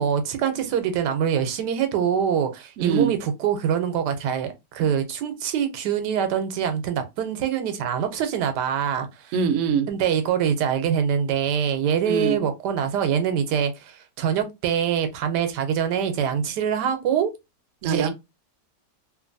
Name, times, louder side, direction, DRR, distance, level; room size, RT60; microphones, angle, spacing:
voice 1, 0.0-9.3 9.9-17.3 17.8-18.1, right 8 dB, 85° right, 1.2 m, -24 dB
voice 2, 2.8-3.1 9.3-9.9 12.0-12.4 17.8-18.1, right 6 dB, 70° right, 0.8 m, -23 dB
2.8 x 2.5 x 2.5 m
omnidirectional pair, 1.8 m